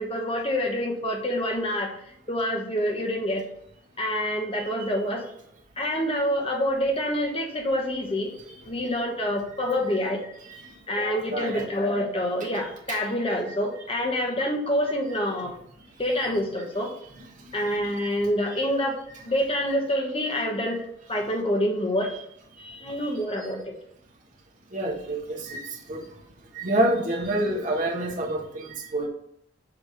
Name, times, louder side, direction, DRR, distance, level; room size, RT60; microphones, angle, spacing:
voice 1, 0.0-1.9 2.3-3.4 4.0-5.2 5.8-8.3 8.6-10.2 10.9-15.5 16.0-16.9 17.5-19.0 19.3-20.8 21.1-22.1 22.8-23.7, equal, 30° left, 1 dB, 1.2 m, -26 dB
voice 2, 11.3-11.7 12.9-13.0 17.1-17.3 17.7-18.1 18.5-18.6 22.0-22.2 22.6-23.5 24.7-26.1 26.5-29.1, right 1 dB, 40° right, -1 dB, 1.4 m, -29 dB
7.0 x 3.3 x 5.7 m, 0.72 s
head